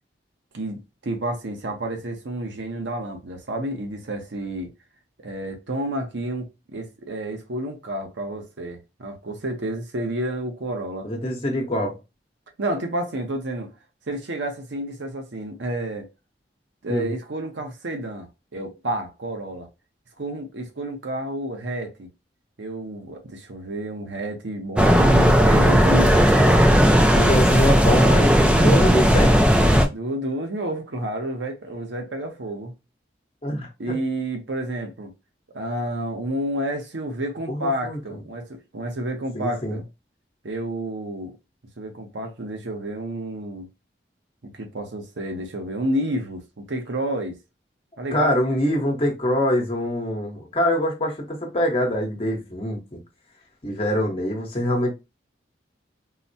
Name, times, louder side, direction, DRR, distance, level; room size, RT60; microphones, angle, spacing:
voice 1, 0.5-4.7 5.2-11.1 12.6-13.7 14.1-16.1 16.8-19.7 20.2-22.1 22.6-26.2 28.5-29.1 29.9-32.7 33.8-35.1 35.5-39.8 40.4-41.3 41.8-43.7 44.4-47.4 48.0-48.7, right 1 dB, 85° right, 0.8 m, -30 dB
voice 2, 11.0-12.0 16.9-17.1 27.1-29.4 33.4-34.0 37.5-38.0 39.3-39.8 48.1-53.0 53.6-55.0, left 1 dB, 30° left, 0.9 m, -24 dB
sound 1, 24.8-29.8, equal, 5° right, 0.3 m, -16 dB
3.9 x 2.1 x 2.6 m
head